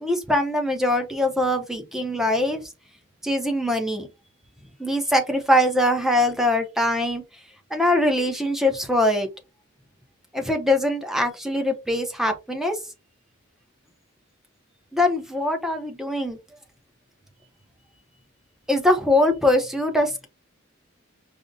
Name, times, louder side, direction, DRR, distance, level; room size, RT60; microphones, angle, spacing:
voice 1, 0.0-2.6 3.2-4.1 4.8-7.2 7.7-9.3 10.3-12.7 14.9-16.4 18.7-20.3, left 1 dB, ahead, 0.6 m, -22 dB
5.0 x 2.0 x 2.6 m
head